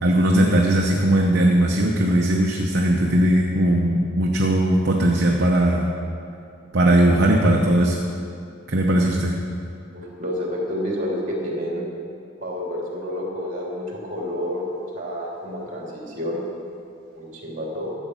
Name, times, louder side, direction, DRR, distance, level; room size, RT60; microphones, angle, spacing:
voice 1, 0.0-5.9 6.7-8.0 8.7-9.3, right 1 dB, 55° right, -1 dB, 0.9 m, -19 dB
voice 2, 9.9-11.8 12.4-16.4 17.1-18.0, equal, 35° right, -3 dB, 2.8 m, -29 dB
13.0 x 8.1 x 6.3 m, 2.5 s
head